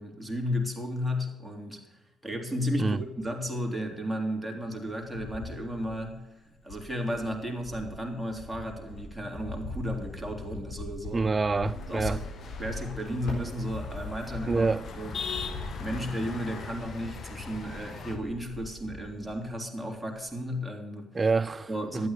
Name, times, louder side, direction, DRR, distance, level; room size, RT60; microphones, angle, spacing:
voice 1, 0.0-11.3 11.9-12.3 12.6-14.7 15.0-15.2 15.8-21.1 21.7-22.1, equal, 5° right, 3.3 m, -34 dB
Cricket, 4.6-6.2 6.6-19.6 19.9-20.4, left 2 dB, 75° left, 4.3 m, -41 dB
voice 2, 11.1-12.2 14.5-14.8 21.1-22.1, right 4 dB, 30° right, 0.4 m, -27 dB
sound 1, 11.6-18.2, left 5 dB, 55° left, 1.7 m, -41 dB
12.0 x 9.2 x 6.8 m
hypercardioid pair, 50°, 0 cm